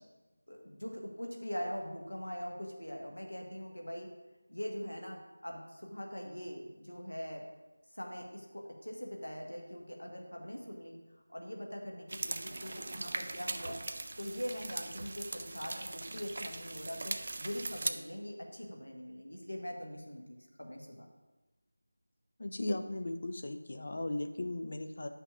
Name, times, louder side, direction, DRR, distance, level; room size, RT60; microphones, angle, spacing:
voice 1, 0.5-4.1 4.5-7.4 7.9-11.0 11.3-21.1, equal, 75° left, 1 dB, 1.2 m, -42 dB
sound 1, 12.1-17.9, right 2 dB, 40° right, 0.3 m, -40 dB
voice 2, 22.4-25.1, left 2 dB, 45° left, 7 dB, 0.4 m, -37 dB
9.5 x 5.8 x 2.4 m, 1.1 s
figure-of-eight pair, 165°, 0 cm